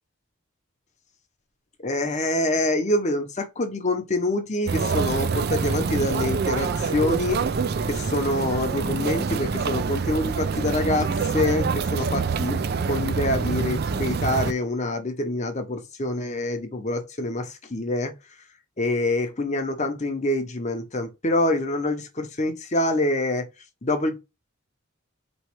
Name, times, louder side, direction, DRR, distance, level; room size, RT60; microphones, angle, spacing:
voice 1, 1.8-7.4 7.8-18.1 18.8-23.5 23.8-24.2, left 1 dB, 35° left, 0.8 m, -26 dB
sound 1, 4.7-14.5, right 5 dB, 50° right, 0.4 m, -26 dB
4.4 x 3.1 x 3.0 m
head